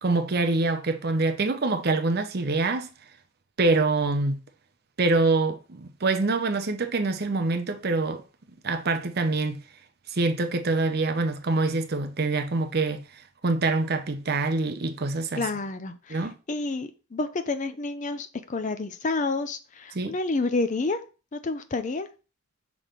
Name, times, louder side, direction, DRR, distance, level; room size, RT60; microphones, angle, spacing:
voice 1, 0.0-2.9 3.6-4.4 5.0-8.2 8.6-9.6 10.1-13.1 13.4-15.5 16.1-16.3 19.9-20.1, right 3 dB, 45° right, 0.7 m, -25 dB
voice 2, 15.4-21.0 21.3-22.1, left 3 dB, 35° left, 0.5 m, -29 dB
5.8 x 3.2 x 5.1 m
head